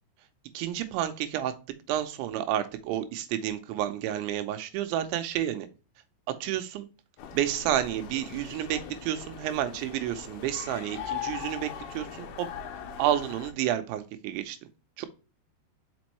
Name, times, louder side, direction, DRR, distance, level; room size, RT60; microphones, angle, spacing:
voice 1, 0.5-1.5 1.9-5.7 6.3-6.9 7.3-12.5 13.0-14.6 15.0-15.1, right 12 dB, 80° right, 8 dB, 2.8 m, -30 dB
sound 1, 7.2-13.5, left 8 dB, 80° left, 2.2 m, -40 dB
6.1 x 5.2 x 3.0 m, 0.32 s
omnidirectional pair, 5.7 m